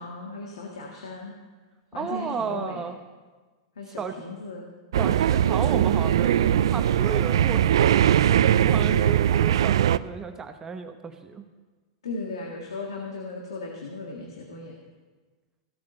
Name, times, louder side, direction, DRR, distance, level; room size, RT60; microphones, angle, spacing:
voice 1, 0.0-1.3 1.9-2.8 3.8-4.7 7.9-8.5 8.9-9.2 12.0-14.7, left 3 dB, 90° left, 0 dB, 1.8 m, -37 dB
voice 2, 1.9-3.0 3.9-4.1 5.0-8.0 8.5-11.5, right 6 dB, 20° right, 7 dB, 0.8 m, -33 dB
sound 1, 4.9-10.0, right 10 dB, 80° right, 0.4 m, -20 dB
15.5 x 8.6 x 6.6 m, 1.3 s
hypercardioid pair, 120°, 3 cm